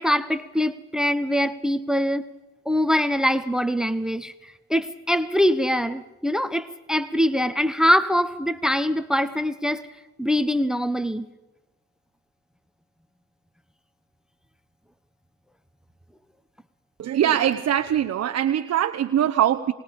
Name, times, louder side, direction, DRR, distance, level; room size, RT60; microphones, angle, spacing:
voice 1, 0.0-2.3 2.7-9.9 10.2-11.3, equal, ahead, 14 dB, 0.9 m, -23 dB
voice 2, 17.0-19.7, right 10 dB, 55° right, 6 dB, 0.9 m, -22 dB
27.5 x 19.5 x 5.3 m, 1.1 s
cardioid pair, 90°, 30 cm